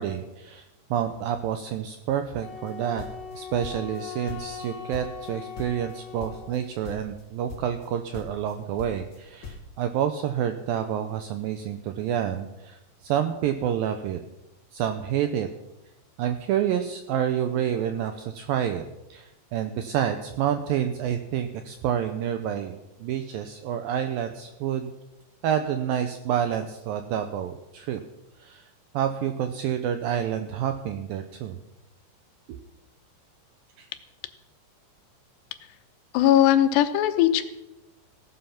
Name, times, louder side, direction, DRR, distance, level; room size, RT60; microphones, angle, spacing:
voice 1, 0.0-3.0 3.3-14.2 14.7-15.5 16.2-18.8 19.1-24.9 25.4-28.0 28.4-31.6 32.5-32.6 33.8-33.9, right 9 dB, 90° right, 8 dB, 2.0 m, -28 dB
Wind instrument woodwind instrument, 2.4-6.7, left 7 dB, 35° left, 3.0 m, -40 dB
sound 1, 2.7-4.0 4.3-5.3 5.6-5.9 6.2-6.6 6.8-7.2 7.5-7.9 8.1-9.7, left 4 dB, 55° left, 1.5 m, -41 dB
voice 2, 36.1-37.4, left 12 dB, 90° left, 9 dB, 3.1 m, -19 dB
16.0 x 11.5 x 5.8 m, 0.97 s
omnidirectional pair, 4.9 m